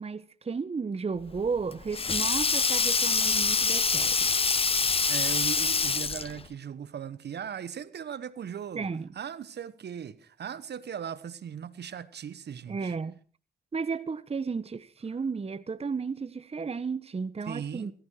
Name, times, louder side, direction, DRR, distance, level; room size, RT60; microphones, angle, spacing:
voice 1, 0.0-4.3 8.7-9.1 12.7-13.1 13.7-17.9, right 5 dB, 30° right, 1.0 m, -33 dB
Sink (filling or washing), 1.3-6.5, left 4 dB, 30° left, 0.8 m, -25 dB
voice 2, 4.8-8.9 9.1-12.9 17.5-17.9, right 8 dB, 55° right, 1.1 m, -38 dB
17.0 x 15.5 x 4.7 m
hypercardioid pair, 50°, 21 cm